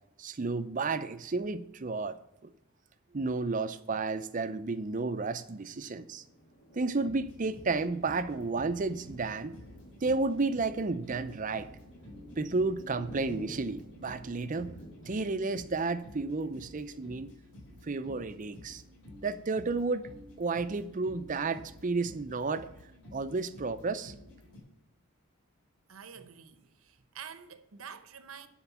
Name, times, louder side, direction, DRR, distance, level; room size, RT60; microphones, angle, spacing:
voice 1, 0.2-2.2 2.4-2.5 3.1-6.2 6.8-9.6 10.0-11.7 12.4-14.7 15.1-17.3 17.8-18.8 19.2-20.1 20.4-22.7 23.1-24.1, right 3 dB, 35° right, 0.5 m, -32 dB
Thunder, 5.3-19.6 20.1-20.3 20.6-21.2, equal, 75° left, 2.0 m, -53 dB
sound 1, 6.8-24.6, left 1 dB, 55° left, 4.0 m, -51 dB
voice 2, 25.9-28.5, right 7 dB, 70° right, 0.9 m, -47 dB
11.0 x 4.5 x 7.2 m
head